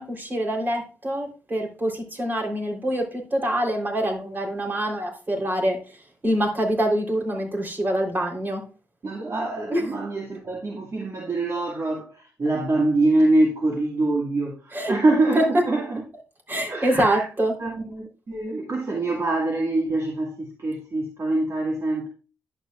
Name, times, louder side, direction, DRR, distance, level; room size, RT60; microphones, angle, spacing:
voice 1, 0.0-5.8 6.2-8.6 9.7-9.9 14.7-15.7 16.5-17.6, right 1 dB, 30° right, 3.7 m, -25 dB
voice 2, 9.0-16.0 16.7-17.2 17.6-22.1, right 2 dB, 45° right, 2.0 m, -24 dB
11.0 x 7.9 x 2.5 m
cardioid pair, 70°, 7 cm